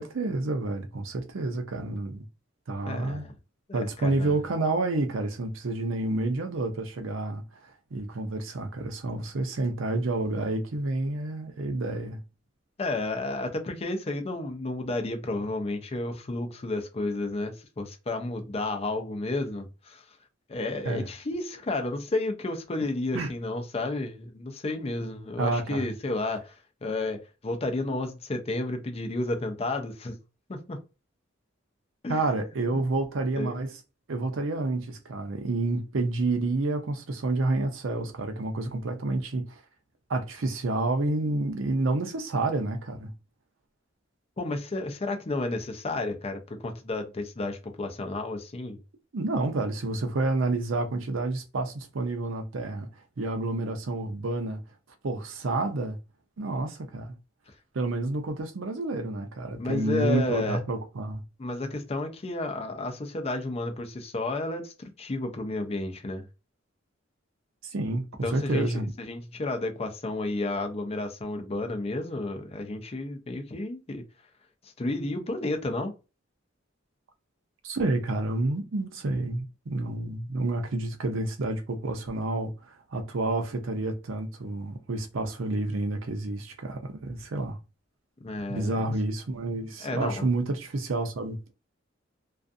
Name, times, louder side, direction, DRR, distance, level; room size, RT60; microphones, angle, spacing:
voice 1, 0.0-2.2 2.7-3.3 3.7-12.2 20.8-21.1 23.1-23.3 25.4-25.9 32.1-33.7 34.1-39.6 40.1-43.1 49.1-52.9 53.2-54.6 55.0-56.0 56.4-57.2 57.7-61.2 67.7-68.9 77.6-87.6 88.5-91.5, right 2 dB, 75° right, 0.6 m, -29 dB
voice 2, 2.9-3.3 3.7-4.3 12.8-20.0 20.5-26.5 26.8-30.2 30.5-30.8 32.0-32.2 32.7-32.8 33.4-33.6 44.4-48.8 59.6-60.6 61.4-66.3 68.2-74.0 74.6-75.9 88.2-88.9 89.8-90.3, left 2 dB, 30° left, 0.5 m, -32 dB
2.4 x 2.3 x 2.5 m
head